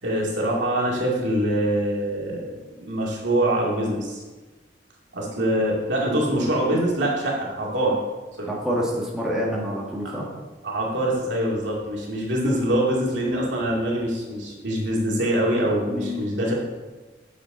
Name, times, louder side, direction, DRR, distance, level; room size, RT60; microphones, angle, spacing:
voice 1, 0.0-4.2 5.1-8.0 8.4-8.5 10.6-16.6, right 1 dB, 80° right, -3 dB, 2.3 m, -24 dB
voice 2, 8.6-10.2 15.9-16.2, equal, 5° right, -5 dB, 1.6 m, -27 dB
8.3 x 7.2 x 3.9 m, 1.2 s
head